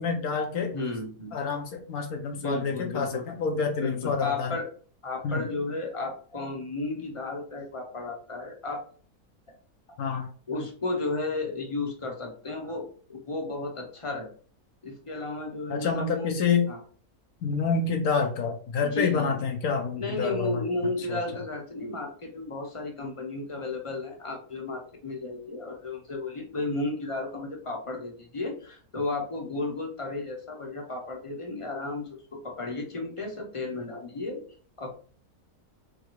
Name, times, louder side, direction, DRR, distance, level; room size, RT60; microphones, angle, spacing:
voice 1, 0.0-0.7 1.3-4.5 5.2-5.4 10.0-10.3 15.7-16.7 17.4-20.6 21.1-21.2, left 5 dB, 75° left, 3 dB, 1.2 m, -28 dB
voice 2, 0.7-1.4 2.4-3.2 3.8-4.7 5.0-8.8 10.5-14.3 14.8-16.3 16.7-16.8 18.8-19.4 20.0-32.2 32.4-34.4 34.8-34.9, left 3 dB, 30° left, 2 dB, 0.7 m, -33 dB
3.8 x 3.4 x 3.1 m, 0.43 s
omnidirectional pair, 1.6 m